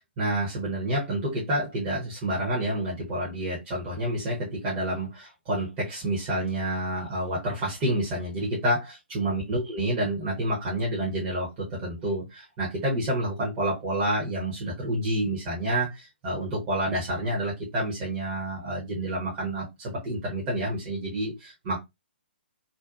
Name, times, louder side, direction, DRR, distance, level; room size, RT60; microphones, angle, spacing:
voice 1, 0.2-21.8, right 1 dB, 30° right, 0.9 m, -29 dB
2.6 x 2.3 x 2.4 m
figure-of-eight pair, 125°, 6 cm